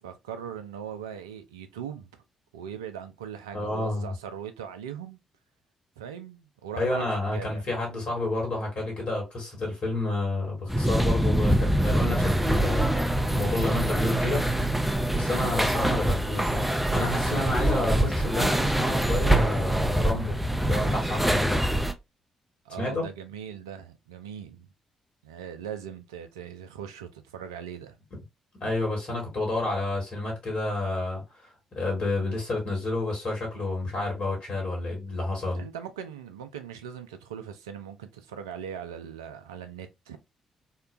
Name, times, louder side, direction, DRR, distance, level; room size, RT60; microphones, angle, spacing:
voice 1, 0.0-2.2 2.5-5.2 6.0-7.0 7.3-7.6 22.7-24.7 25.2-28.0 35.6-40.2, right 8 dB, 85° right, 0.3 m, -40 dB
voice 2, 3.5-4.1 6.8-14.4 14.9-21.6 22.8-23.0 28.6-35.6, left 2 dB, 55° left, 1.6 m, -30 dB
sound 1, 10.7-21.9, right 1 dB, 5° right, 0.4 m, -24 dB
2.8 x 2.2 x 2.4 m
figure-of-eight pair, 40°, 2 cm